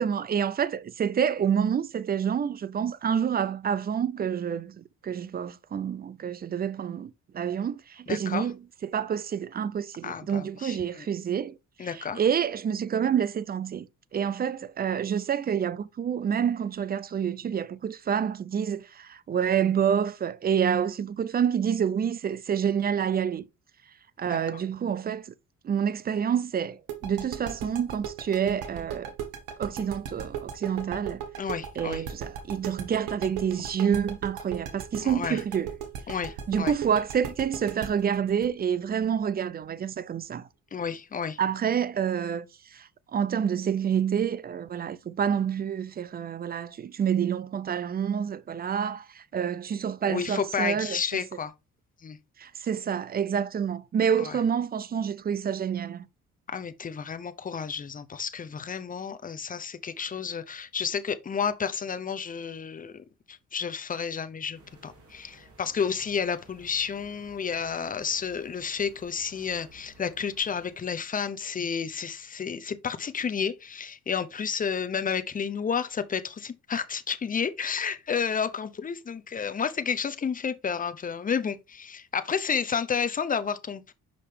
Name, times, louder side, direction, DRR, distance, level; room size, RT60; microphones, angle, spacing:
voice 1, 0.0-8.6 8.8-13.9 14.1-23.4 24.2-25.3 25.6-29.1 29.6-31.2 31.8-35.7 36.5-40.5 41.4-51.2 52.4-56.0, right 8 dB, 30° right, 0.4 m, -28 dB
voice 2, 8.1-8.5 10.0-11.1 11.8-12.2 24.3-24.4 31.4-32.0 35.0-35.4 36.1-36.7 40.7-41.4 50.1-51.5 52.0-52.2 54.2-54.4 56.5-83.9, left 6 dB, 30° left, 0.7 m, -31 dB
sound 1, 26.9-39.6, right 8 dB, 90° right, 1.2 m, -36 dB
sound 2, 64.5-71.0, right 2 dB, 50° right, 2.6 m, -55 dB
5.6 x 5.1 x 3.3 m
cardioid pair, 90°, 30 cm